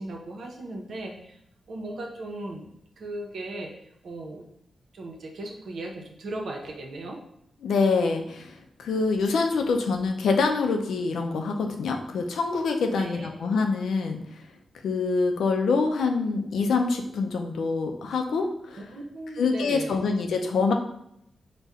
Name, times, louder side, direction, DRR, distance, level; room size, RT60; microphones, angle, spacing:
voice 1, 0.0-1.4 1.7-3.7 4.0-4.4 4.9-7.2 13.0-13.3 18.9-20.0, right 2 dB, 70° right, 1 dB, 0.7 m, -37 dB
voice 2, 7.6-14.4 14.8-18.9 19.4-20.7, left 4 dB, 85° left, 4 dB, 0.5 m, -25 dB
4.1 x 2.2 x 3.6 m, 0.76 s
cardioid pair, 65°, 0 cm